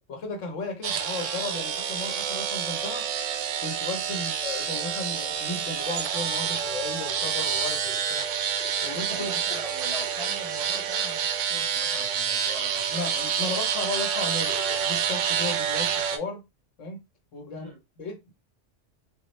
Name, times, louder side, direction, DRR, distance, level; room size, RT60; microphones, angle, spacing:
voice 1, 0.1-3.1 3.6-8.3 8.8-9.6 12.9-16.4 16.8-17.0 17.3-17.7 18.0-18.3, left 3 dB, 80° left, 1.3 m, -35 dB
sound 1, 0.8-16.2, right 8 dB, 75° right, 0.9 m, -28 dB
sound 2, 6.4-11.4, left 8 dB, 55° left, 0.9 m, -47 dB
voice 2, 9.1-12.9 17.4-17.8, right 1 dB, 30° right, 1.2 m, -43 dB
3.5 x 2.2 x 3.1 m
omnidirectional pair, 1.3 m